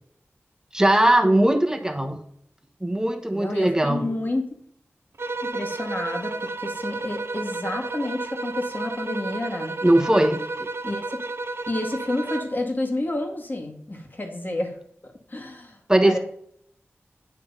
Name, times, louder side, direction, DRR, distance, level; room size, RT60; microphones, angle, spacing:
voice 1, 0.7-2.2 2.8-4.1 9.8-10.7 15.9-16.2, right 1 dB, 15° right, 3 dB, 1.2 m, -20 dB
voice 2, 3.3-4.4 5.4-9.8 10.8-11.2 11.7-14.8 15.0-16.2, left 2 dB, 40° left, 2 dB, 2.0 m, -30 dB
sound 1, 5.2-12.6, right 3 dB, 60° right, 0.6 m, -32 dB
9.5 x 3.5 x 5.5 m, 0.68 s
wide cardioid pair, 50°, 5 cm